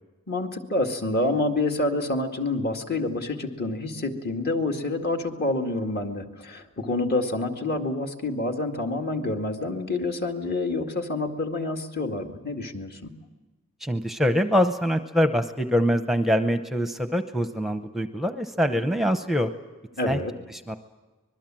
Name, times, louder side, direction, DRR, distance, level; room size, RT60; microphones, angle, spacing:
voice 1, 0.3-13.1 20.0-20.3, left 2 dB, 45° left, 3 dB, 2.1 m, -28 dB
voice 2, 13.8-19.5 20.1-20.2 20.7-20.8, equal, ahead, 8 dB, 0.8 m, -24 dB
25.0 x 21.5 x 7.6 m, 1.2 s
head